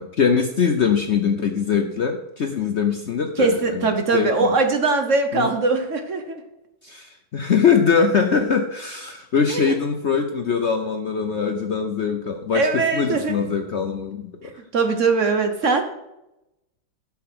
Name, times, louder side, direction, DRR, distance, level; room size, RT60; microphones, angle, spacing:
voice 1, 0.0-4.6 5.3-5.5 6.8-14.5, left 6 dB, 55° left, 5 dB, 0.8 m, -22 dB
voice 2, 3.4-6.4 9.5-9.8 12.5-13.4 14.7-15.8, right 4 dB, 50° right, 6 dB, 1.2 m, -21 dB
12.5 x 5.6 x 6.0 m, 0.91 s
omnidirectional pair, 1.9 m